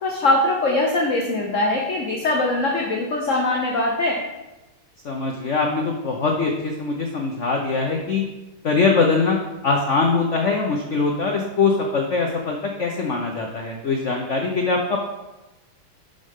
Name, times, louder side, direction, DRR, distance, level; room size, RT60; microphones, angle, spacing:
voice 1, 0.0-4.2, left 2 dB, 55° left, -1 dB, 0.9 m, -22 dB
voice 2, 5.0-8.2 8.6-9.4 9.6-15.0, left 4 dB, 85° left, 1 dB, 0.6 m, -22 dB
11.5 x 5.2 x 3.6 m, 1.0 s
omnidirectional pair, 2.4 m